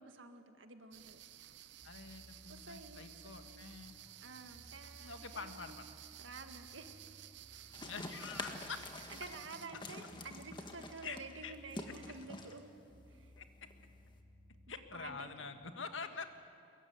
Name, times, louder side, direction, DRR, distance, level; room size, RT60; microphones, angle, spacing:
voice 1, 0.0-1.6 2.5-3.7 4.2-5.7 6.2-7.0 7.5-7.9 9.1-12.7 13.1-13.4 14.9-15.4, right 3 dB, 80° right, 6 dB, 1.9 m, -51 dB
sound 1, 0.9-9.7, right 12 dB, 60° right, 0.7 m, -55 dB
voice 2, 1.8-4.0 5.0-5.9 7.8-8.8 11.0-11.2 11.4-11.5 13.4-13.7 14.7-16.3, left 5 dB, 85° left, 7 dB, 1.7 m, -46 dB
sound 2, 1.8-15.7, equal, 35° right, 1.7 m, -61 dB
sound 3, 7.7-14.2, left 2 dB, 25° left, 1.6 m, -48 dB
23.5 x 21.5 x 9.3 m, 2.4 s
head